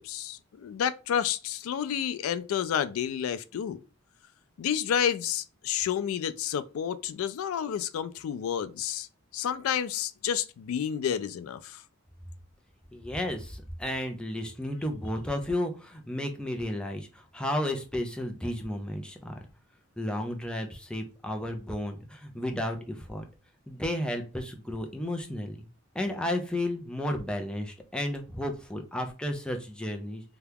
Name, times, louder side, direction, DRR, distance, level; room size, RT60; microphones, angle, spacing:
voice 1, 0.0-3.8 4.6-9.1 9.3-11.8, left 8 dB, 90° left, 0.3 m, -30 dB
voice 2, 12.9-17.1 17.3-19.4 20.0-23.2 23.7-25.6 25.9-30.2, left 1 dB, 5° left, 0.4 m, -33 dB
2.8 x 2.3 x 3.4 m
head